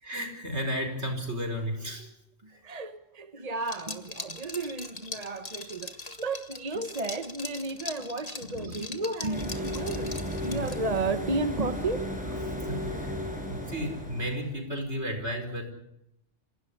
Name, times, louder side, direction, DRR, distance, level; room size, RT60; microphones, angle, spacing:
voice 1, 0.0-2.1 2.5-2.6 8.5-8.8 10.5-10.7 12.7-13.1 13.5-15.7, equal, 70° right, 5.2 m, -33 dB
voice 2, 2.4-12.1, right 2 dB, 35° right, 1.3 m, -33 dB
Liquid, 3.6-11.0, left 2 dB, 35° left, 2.0 m, -41 dB
sound 1, 9.3-14.5, equal, 5° right, 7.1 m, -34 dB
27.0 x 17.0 x 9.9 m
omnidirectional pair, 1.2 m